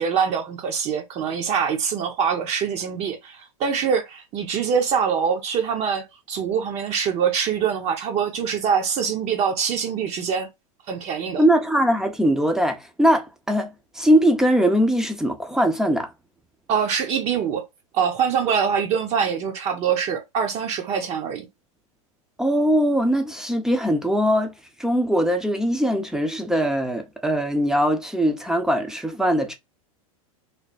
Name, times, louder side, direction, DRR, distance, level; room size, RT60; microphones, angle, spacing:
voice 1, 0.0-10.5 10.9-11.4 16.7-17.7 17.9-21.5, right 7 dB, 35° right, 0.9 m, -24 dB
voice 2, 11.4-13.7 13.9-16.1 22.4-24.5 24.8-29.5, equal, 5° right, 0.7 m, -21 dB
3.3 x 2.1 x 4.1 m
hypercardioid pair, 125°, 18 cm